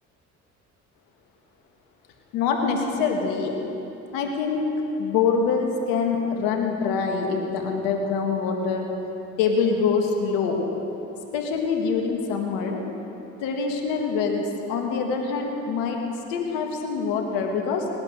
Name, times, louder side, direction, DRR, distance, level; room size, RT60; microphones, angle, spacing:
voice 1, 2.3-3.5 4.1-4.7 5.0-8.9 9.4-10.6 11.3-12.8 13.4-16.0 16.3-17.8, left 5 dB, 90° left, 2 dB, 1.8 m, -25 dB
18.5 x 10.5 x 6.7 m, 3.0 s
supercardioid pair, 60°, 32 cm